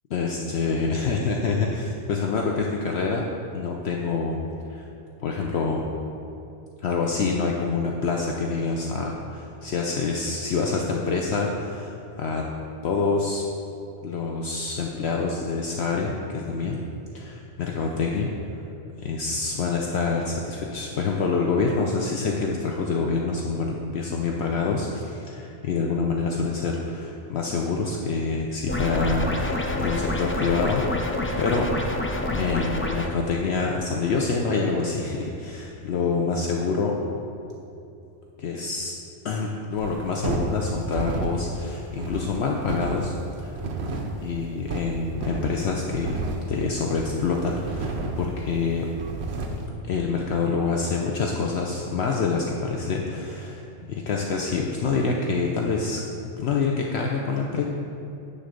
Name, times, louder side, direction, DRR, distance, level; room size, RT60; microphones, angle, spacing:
voice 1, 0.1-3.2 3.5-4.4 4.7-4.8 5.2-5.9 6.8-12.4 12.8-13.4 14.0-16.8 17.1-18.3 19.0-30.8 31.4-31.7 32.3-37.0 38.4-38.9 39.2-43.6 44.2-46.2 46.5-48.9 49.8-56.0 56.4-57.6, left 4 dB, 65° left, 0 dB, 0.9 m, -26 dB
sound 1, 28.7-33.1, left 2 dB, 20° left, 0.3 m, -27 dB
sound 2, 39.8-49.7, right 3 dB, 65° right, 1.0 m, -32 dB
9.9 x 3.9 x 6.6 m, 2.8 s
omnidirectional pair, 1.2 m